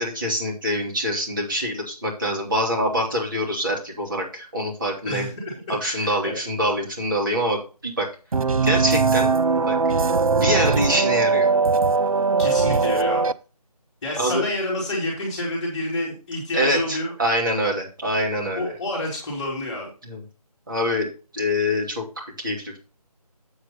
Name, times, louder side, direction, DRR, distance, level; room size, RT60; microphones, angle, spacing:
voice 1, 0.0-5.3 5.7-8.1 8.6-9.3 9.6-9.8 10.4-11.5 14.2-14.4 16.5-18.7 20.0-20.2 20.7-21.1 21.3-22.8, equal, 30° right, -1 dB, 3.1 m, -25 dB
voice 2, 5.0-6.3 12.4-13.2 14.0-17.1 18.5-19.9, left 1 dB, 10° left, -6 dB, 2.5 m, -29 dB
sound 1, 8.3-13.3, right 4 dB, 60° right, 0.5 m, -20 dB
8.1 x 7.4 x 4.0 m, 0.34 s
figure-of-eight pair, 170°, 20 cm